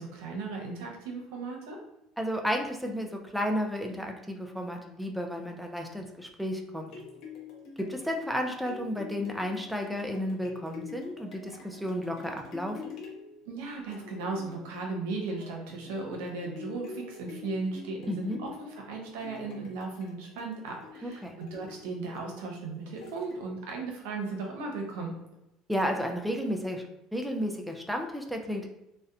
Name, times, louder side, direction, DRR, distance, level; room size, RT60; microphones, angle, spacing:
voice 1, 0.0-1.8 13.5-25.1, right 3 dB, 90° right, 1 dB, 0.6 m, -36 dB
voice 2, 2.2-6.9 7.8-13.0 18.1-18.4 21.0-21.4 25.7-26.8 27.1-28.7, equal, ahead, 3 dB, 0.3 m, -32 dB
sound 1, 6.8-23.7 24.2-24.3, left 5 dB, 60° left, 0.6 m, -47 dB
2.6 x 2.0 x 2.3 m, 0.87 s
cardioid pair, 120°, 0 cm